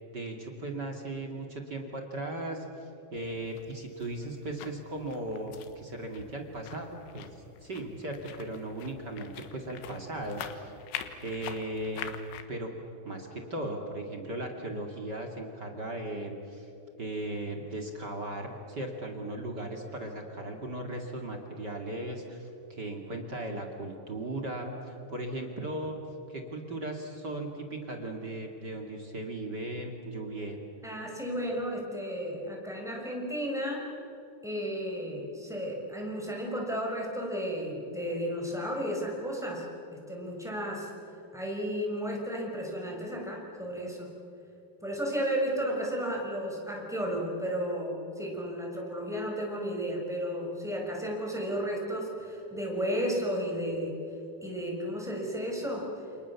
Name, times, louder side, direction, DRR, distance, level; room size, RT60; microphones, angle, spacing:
voice 1, 0.1-7.3 7.6-10.8 11.2-12.1 12.5-12.7 13.0-16.7 17.0-26.0 26.3-30.6, right 1 dB, 35° right, 2 dB, 2.0 m, -37 dB
sound 1, 3.2-12.4, left 9 dB, 85° left, 3.9 m, -45 dB
voice 2, 30.8-33.9 34.4-39.7 39.9-40.9 41.3-44.1 44.8-54.0 54.4-55.9, equal, ahead, -1 dB, 5.2 m, -33 dB
29.0 x 28.5 x 7.2 m, 3.0 s
omnidirectional pair, 5.3 m